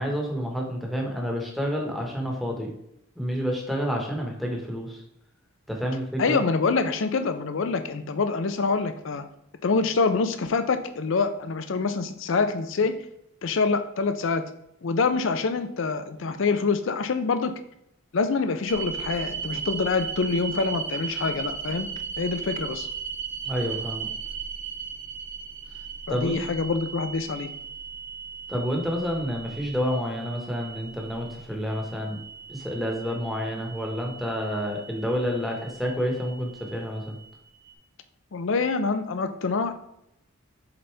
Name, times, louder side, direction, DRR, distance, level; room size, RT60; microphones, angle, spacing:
voice 1, 0.0-2.7 3.2-5.0 5.7-6.4 23.4-24.1 26.1-26.4 28.5-32.2 32.5-37.1, equal, ahead, -1 dB, 1.2 m, -29 dB
voice 2, 6.2-9.2 9.6-13.0 13.4-14.4 14.8-17.5 18.1-21.9 22.2-22.9 26.1-27.5 38.3-39.7, left 4 dB, 65° left, 9 dB, 0.5 m, -25 dB
sound 1, 18.7-37.7, right 6 dB, 65° right, 1.6 m, -37 dB
7.9 x 4.1 x 3.3 m, 0.78 s
head